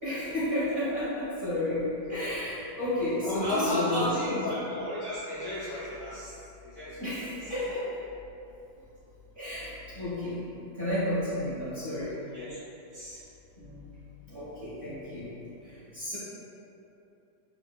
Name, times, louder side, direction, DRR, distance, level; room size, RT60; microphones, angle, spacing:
voice 1, 0.0-4.4 7.0-8.0 9.4-12.2 13.6-13.8 14.3-15.3 15.6-16.2, left 1 dB, 35° right, -13 dB, 1.0 m, -32 dB
voice 2, 3.2-6.3 6.6-7.0 12.3-12.6 12.9-13.2, left 1 dB, 15° left, -12 dB, 0.8 m, -33 dB
4.6 x 2.5 x 2.3 m, 2.9 s
omnidirectional pair, 1.9 m